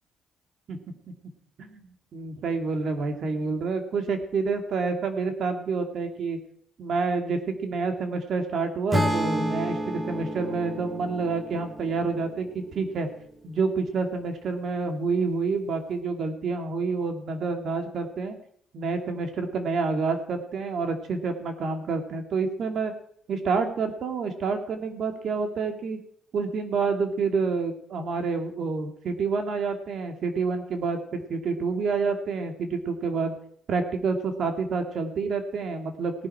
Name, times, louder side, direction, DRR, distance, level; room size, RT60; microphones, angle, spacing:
voice 1, 1.6-6.4 6.8-13.1 13.4-18.4 18.7-22.9 23.3-26.0 26.3-33.3 33.7-36.1, right 4 dB, 65° right, 5 dB, 2.5 m, -28 dB
Acoustic guitar / Strum, 8.9-13.1, equal, 10° right, 2.1 m, -30 dB
18.0 x 11.0 x 4.9 m, 0.66 s
cardioid pair, 90°, 0 cm